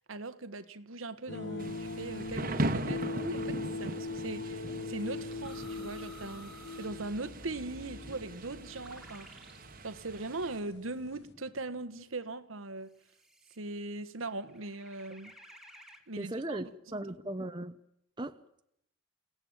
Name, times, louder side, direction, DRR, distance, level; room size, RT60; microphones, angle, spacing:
voice 1, 0.1-9.3 9.8-12.9 13.6-15.3 16.1-16.6 16.9-17.0, right 2 dB, 90° right, 1.4 m, -40 dB
sound 1, 1.3-11.3, left 3 dB, 60° left, 1.4 m, -41 dB
Thunder / Rain, 1.6-10.6, right 1 dB, 45° right, 1.4 m, -40 dB
sound 2, 4.1-4.3 5.4-7.0 7.6-7.7 8.8-9.7 10.4-12.1 13.0-13.6 14.4-16.1, left 1 dB, 5° right, 2.2 m, -55 dB
voice 2, 16.2-17.8 18.2-18.4, right 1 dB, 25° right, 1.0 m, -37 dB
29.5 x 17.0 x 8.9 m
head